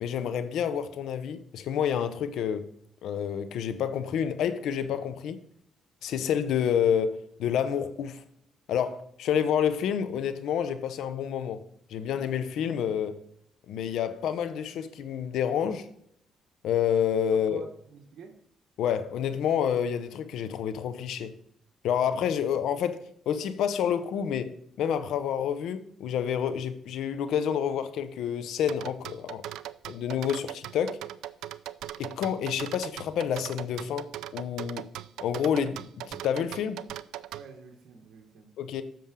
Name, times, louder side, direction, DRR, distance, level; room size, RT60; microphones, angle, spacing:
voice 1, 0.0-2.6 3.0-5.4 6.0-8.2 8.7-11.6 11.9-13.2 13.7-15.9 16.6-17.6 18.8-21.3 21.8-23.0 23.3-24.5 24.8-29.4 29.9-31.0 32.0-34.9 35.2-36.9 38.6-38.8, left 8 dB, 80° left, 0.7 m, -28 dB
voice 2, 17.5-18.4 37.3-38.5, right 5 dB, 75° right, 1.3 m, -49 dB
sound 1, 28.7-37.4, right 13 dB, 90° right, 0.3 m, -39 dB
7.6 x 6.9 x 3.7 m
cardioid pair, 90°, 0 cm